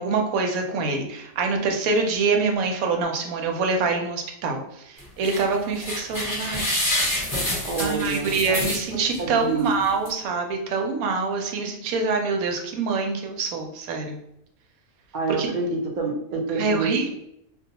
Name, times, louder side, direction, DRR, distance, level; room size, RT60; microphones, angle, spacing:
voice 1, 0.0-6.8 7.8-14.2 15.3-15.5 16.6-17.1, right 4 dB, 90° right, 3 dB, 1.0 m, -25 dB
sound 1, 5.0-5.4 5.8-9.2 9.7-9.8 10.1-10.2, left 1 dB, 15° left, 0.7 m, -27 dB
voice 2, 7.6-8.6 9.2-9.8 15.1-17.1, right 4 dB, 65° right, 0 dB, 0.4 m, -27 dB
2.3 x 2.2 x 2.7 m, 0.76 s
omnidirectional pair, 1.5 m